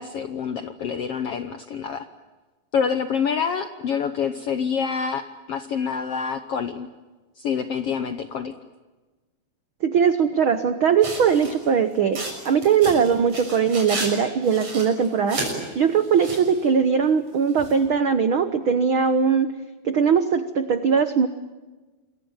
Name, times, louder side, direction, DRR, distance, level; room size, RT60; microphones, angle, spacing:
voice 1, 0.0-2.1 2.7-6.9 7.4-8.5, left 6 dB, 70° left, 9 dB, 1.4 m, -27 dB
voice 2, 9.8-15.4 15.7-19.5 19.8-21.3, right 6 dB, 85° right, 10 dB, 1.1 m, -20 dB
sound 1, 11.0-11.6 12.1-14.1 14.4-15.6 16.0-16.5 17.6-17.7, right 2 dB, 45° right, 7.5 m, -32 dB
28.0 x 23.0 x 9.0 m, 1.2 s
omnidirectional pair, 4.1 m